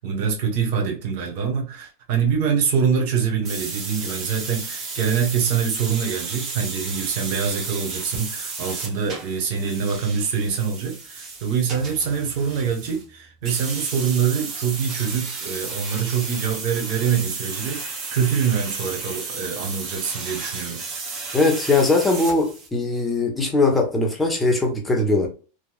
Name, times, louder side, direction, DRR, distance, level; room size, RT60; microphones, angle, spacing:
voice 1, 0.0-20.8, right 7 dB, 60° right, 1.0 m, -24 dB
sound 1, 3.5-13.1 13.4-22.7, right 4 dB, 35° right, 1.0 m, -33 dB
voice 2, 21.3-25.3, left 3 dB, 10° left, 1.0 m, -20 dB
3.0 x 2.4 x 2.3 m
hypercardioid pair, 115°, 0 cm